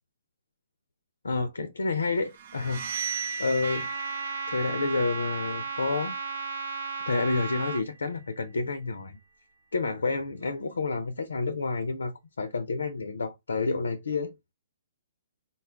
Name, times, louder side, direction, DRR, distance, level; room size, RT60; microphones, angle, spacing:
voice 1, 1.2-2.9 3.4-3.9 4.5-6.2 7.1-9.2 9.7-14.3, left 3 dB, 80° left, 0.5 m, -29 dB
sound 1, 2.3-8.0, right 5 dB, 55° right, 0.6 m, -38 dB
Trumpet, 3.6-7.8, right 5 dB, 75° right, 0.9 m, -35 dB
4.1 x 2.3 x 3.4 m
hypercardioid pair, 130°, 0 cm